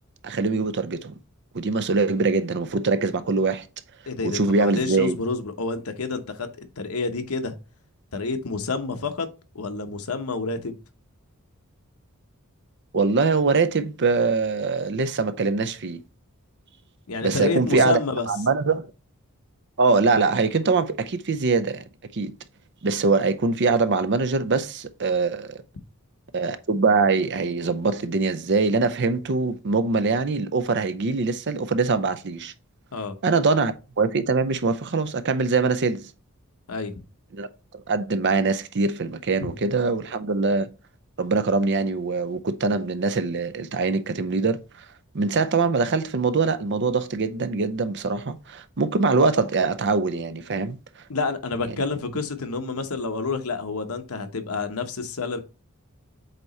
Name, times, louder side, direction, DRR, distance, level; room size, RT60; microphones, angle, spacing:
voice 1, 0.2-1.2 1.5-3.7 4.2-5.2 12.9-16.0 17.2-18.0 18.3-18.9 19.8-21.8 22.1-22.3 22.8-25.6 26.3-32.5 33.2-36.1 37.3-37.5 37.9-40.7 41.2-44.6 45.1-50.8, right 4 dB, 50° right, 0.6 m, -23 dB
voice 2, 4.1-7.5 8.1-9.3 9.5-10.8 17.1-18.3 32.9-33.2 36.7-36.9 39.4-39.5 51.1-55.4, left 3 dB, 75° left, 1.0 m, -28 dB
8.0 x 2.9 x 4.1 m
head